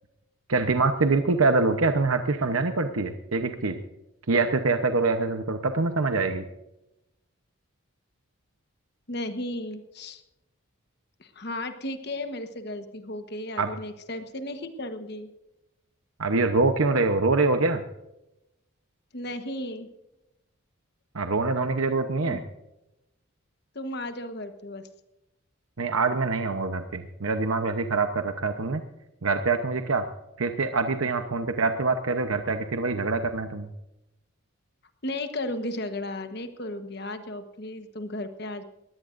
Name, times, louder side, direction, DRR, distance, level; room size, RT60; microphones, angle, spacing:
voice 1, 0.5-3.8 4.3-6.4 13.6-13.7 16.2-17.8 21.1-22.4 25.8-28.8 29.2-30.0 30.4-33.7, right 3 dB, 90° right, 7 dB, 0.9 m, -25 dB
voice 2, 9.1-10.2 11.2-15.3 19.1-19.9 22.2-22.4 23.7-24.8 35.0-38.6, left 1 dB, 50° left, 8 dB, 1.2 m, -34 dB
21.0 x 17.0 x 2.6 m, 0.91 s
head